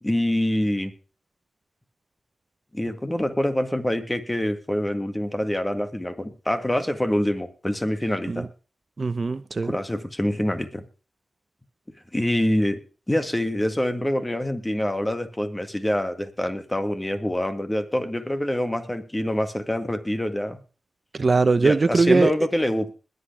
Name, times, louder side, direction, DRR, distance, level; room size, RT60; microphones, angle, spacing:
voice 1, 0.0-0.9 2.7-8.5 9.6-10.8 12.1-12.8 13.1-20.6 21.6-22.9, left 1 dB, 15° left, 2.0 m, -25 dB
voice 2, 9.0-9.7 21.1-22.3, right 3 dB, 50° right, 0.7 m, -20 dB
21.0 x 8.3 x 3.4 m
wide cardioid pair, 80°, 0 cm